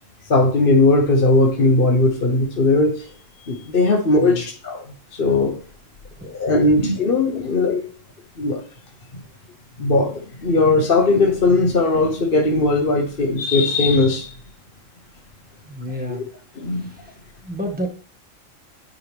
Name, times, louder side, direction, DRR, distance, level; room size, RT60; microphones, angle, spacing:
voice 1, 0.3-3.1 3.4-4.9 5.1-5.5 6.2-7.8 8.4-8.6 9.8-14.3 16.1-16.2 16.6-16.9, left 2 dB, 45° left, 1 dB, 1.2 m, -18 dB
voice 2, 4.2-4.5 6.2-6.3 15.6-16.2 16.8-17.0 17.4-17.9, equal, 5° right, 1 dB, 1.4 m, -29 dB
9.6 x 4.7 x 3.5 m, 0.41 s
omnidirectional pair, 1.4 m